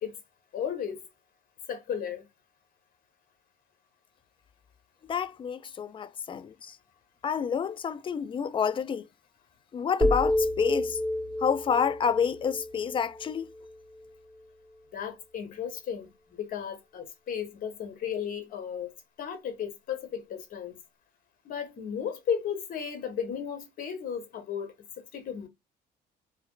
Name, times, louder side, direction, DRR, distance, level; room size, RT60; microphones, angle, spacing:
voice 1, 0.5-1.0 1.7-2.3 14.9-18.9 19.2-20.8 21.4-25.5, left 8 dB, 55° left, 1.2 m, -34 dB
voice 2, 5.1-6.8 7.2-9.1 9.7-11.0 11.4-13.5, left 7 dB, 30° left, 0.4 m, -29 dB
sound 1, 10.0-14.1, left 1 dB, 10° right, 2.0 m, -30 dB
3.3 x 2.9 x 2.3 m
cardioid pair, 110°, 17 cm